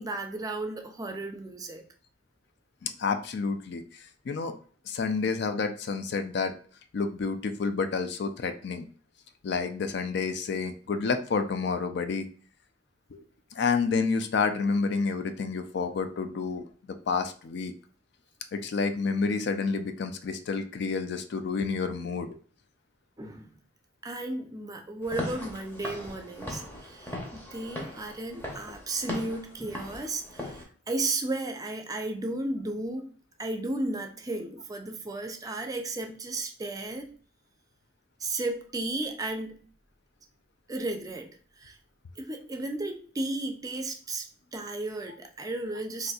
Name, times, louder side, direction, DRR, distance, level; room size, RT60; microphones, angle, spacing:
voice 1, 0.0-1.8 23.2-23.5 24.0-33.1 33.4-37.1 38.2-39.7 40.7-41.3 41.6-41.8 42.2-44.3 44.5-46.1, right 2 dB, 20° right, 5 dB, 0.4 m, -34 dB
voice 2, 2.8-4.5 4.9-6.5 6.9-8.9 9.4-12.3 13.1-13.2 13.5-16.7 17.1-17.7 18.5-22.4, left 4 dB, 60° left, 8 dB, 0.4 m, -29 dB
Walk footsteps / Siren, 25.0-30.6, left 1 dB, 10° left, 0.7 m, -39 dB
4.1 x 2.6 x 2.3 m, 0.44 s
head